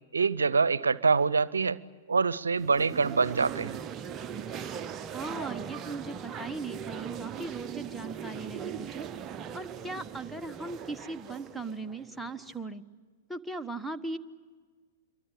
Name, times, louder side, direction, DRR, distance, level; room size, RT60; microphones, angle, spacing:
voice 1, 0.1-1.8 2.1-3.8, right 4 dB, 75° right, 20 dB, 0.7 m, -25 dB
sound 1, 2.6-12.6, right 8 dB, 25° right, 0.8 m, -40 dB
voice 2, 5.1-9.1 9.5-12.8 13.3-14.2, right 3 dB, ahead, 8 dB, 1.2 m, -38 dB
28.0 x 23.5 x 8.6 m, 1.6 s
figure-of-eight pair, 100°, 0 cm